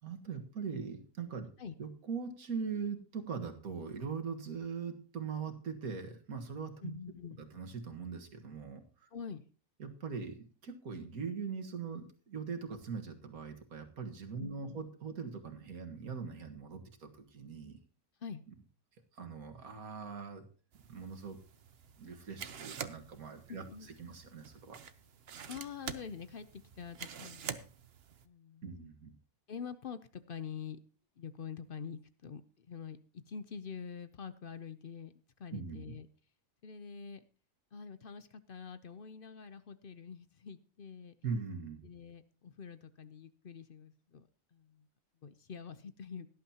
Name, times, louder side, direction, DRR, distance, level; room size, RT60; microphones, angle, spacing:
voice 1, 0.0-1.5 1.8-6.9 7.4-9.1 9.8-17.8 19.1-20.4 20.9-21.4 22.0-24.8 28.6-29.1 35.5-35.8 41.2-41.8, right 5 dB, 75° right, 5 dB, 2.1 m, -41 dB
voice 2, 6.8-7.4 9.1-9.4 14.4-14.8 18.2-18.4 23.5-24.1 25.4-27.5 28.2-28.9 29.5-30.8 31.2-33.0 33.3-35.1 35.4-36.1 36.6-37.2 37.7-41.1 41.8-44.9 45.2-46.3, left 6 dB, 55° left, 13 dB, 0.6 m, -46 dB
sound 1, 20.7-28.2, right 7 dB, 50° right, 0.9 m, -47 dB
17.5 x 11.0 x 2.9 m, 0.39 s
omnidirectional pair, 1.5 m